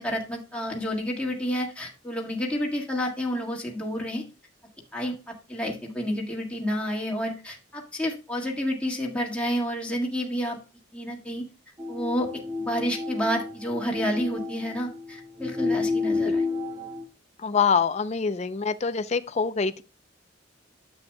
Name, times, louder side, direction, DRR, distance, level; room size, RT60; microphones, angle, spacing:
voice 1, 0.0-4.3 4.9-10.6 10.9-11.4 11.9-12.3 12.6-16.4, equal, 5° left, 1.7 m, -30 dB
sound 1, 11.8-17.0, left 3 dB, 20° right, 1.3 m, -30 dB
voice 2, 17.4-19.8, left 5 dB, 35° left, 0.5 m, -25 dB
9.7 x 7.8 x 2.2 m
head